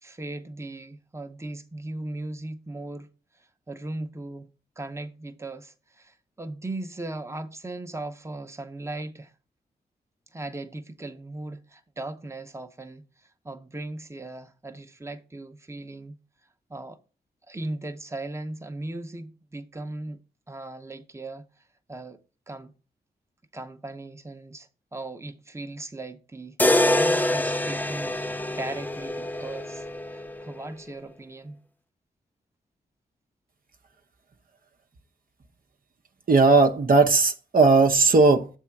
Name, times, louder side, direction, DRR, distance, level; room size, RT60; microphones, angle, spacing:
voice 1, 0.0-3.1 3.7-4.5 4.8-9.3 10.3-16.1 16.7-17.0 17.5-20.2 20.5-21.5 21.9-22.2 22.5-22.7 23.5-28.2 28.5-31.6, right 2 dB, 15° right, 0.9 m, -38 dB
sound 1, 26.6-30.7, left 1 dB, 10° left, 0.5 m, -25 dB
voice 2, 36.3-38.5, right 3 dB, 50° right, 0.8 m, -17 dB
7.4 x 3.6 x 5.8 m
cardioid pair, 50°, 18 cm